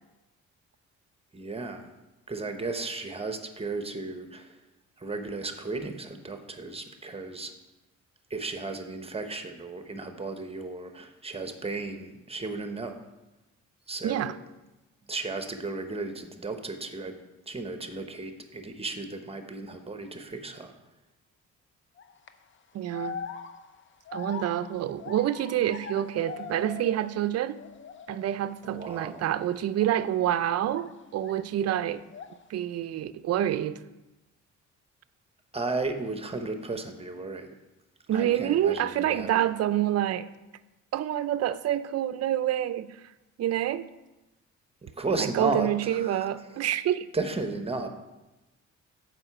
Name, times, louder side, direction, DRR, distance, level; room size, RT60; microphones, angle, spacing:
voice 1, 1.3-1.9 2.3-4.5 5.0-7.5 8.3-13.0 13.9-14.3 15.1-17.2 17.5-20.7 28.6-29.2 35.5-37.5 38.1-39.4 44.8-46.2 47.1-47.9, right 3 dB, 20° right, 7 dB, 0.9 m, -34 dB
voice 2, 14.0-14.4 22.7-23.2 24.1-27.6 28.1-32.0 32.5-33.8 38.1-40.3 40.9-43.0 43.4-43.9 45.2-47.1, right 11 dB, 55° right, 14 dB, 0.5 m, -27 dB
sound 1, 22.0-22.3 22.9-27.3 27.5-28.3 28.7-29.0 29.8-31.4 31.7-32.5, left 6 dB, 40° left, 0.6 m, -42 dB
7.8 x 4.8 x 5.9 m, 1.0 s
cardioid pair, 90°, 30 cm